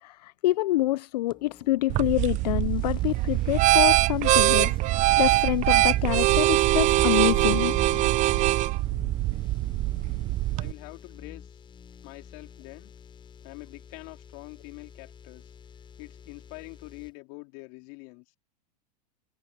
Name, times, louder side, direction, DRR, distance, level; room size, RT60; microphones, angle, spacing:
voice 1, 0.0-7.7, left 16 dB, 75° left, 0.5 m, -27 dB
sound 1, 1.3-17.1, left 7 dB, 25° left, 5.0 m, -45 dB
sound 2, 1.9-10.7, right 18 dB, 35° right, 0.6 m, -23 dB
voice 2, 10.6-11.5 12.0-12.9 13.4-15.5 16.0-18.2, left 30 dB, 55° left, 3.8 m, -45 dB
hypercardioid pair, 110°, 21 cm